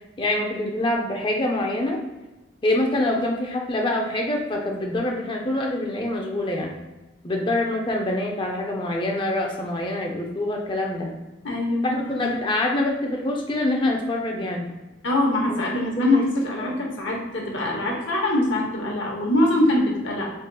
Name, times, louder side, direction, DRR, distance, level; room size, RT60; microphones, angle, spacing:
voice 1, 0.2-2.0 2.6-6.7 7.2-11.1 11.8-14.7 15.5-15.6 16.0-16.2 16.6-16.8, left 1 dB, 25° left, 1 dB, 0.5 m, -25 dB
voice 2, 11.4-12.3 15.0-20.3, left 1 dB, 85° left, -1 dB, 1.0 m, -23 dB
3.8 x 3.7 x 2.3 m, 1.1 s
head